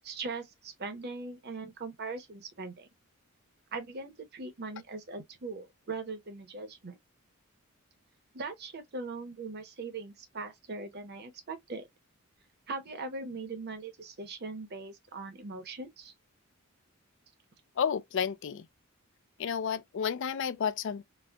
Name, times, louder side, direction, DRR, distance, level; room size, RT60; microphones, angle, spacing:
voice 1, 0.0-2.9 3.7-7.0 8.3-11.9 12.7-16.1, right 3 dB, 50° right, 0.8 m, -40 dB
voice 2, 17.8-18.7 19.4-21.0, left 7 dB, 60° left, 0.4 m, -31 dB
4.1 x 2.1 x 2.3 m
head